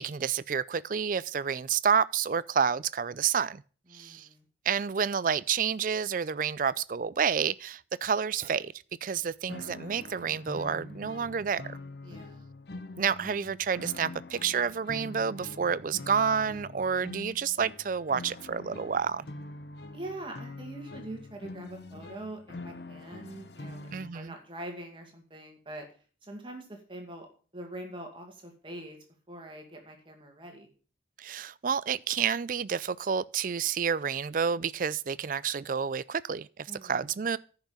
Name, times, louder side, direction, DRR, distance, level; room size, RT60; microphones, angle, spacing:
voice 1, 0.0-3.6 3.9-4.3 4.7-8.7 9.0-11.8 13.0-19.3 23.9-24.3 31.2-37.4, right 7 dB, 45° right, 0.4 m, -29 dB
voice 2, 3.9-4.5 12.0-12.5 19.9-25.9 26.2-27.3 27.5-29.0 29.3-30.7 36.7-37.2, right 1 dB, 25° right, 2.2 m, -43 dB
sound 1, 9.5-24.1, left 2 dB, 60° left, 0.9 m, -44 dB
10.5 x 6.0 x 7.1 m
head